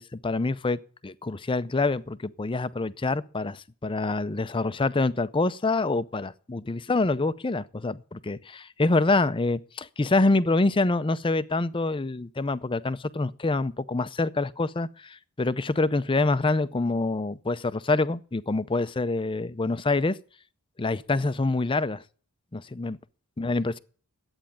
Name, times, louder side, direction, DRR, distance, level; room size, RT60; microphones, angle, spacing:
voice 1, 0.0-20.2 20.8-22.0 22.5-23.0 23.4-23.8, left 3 dB, 20° left, 0.5 m, -26 dB
11.5 x 8.9 x 8.5 m
head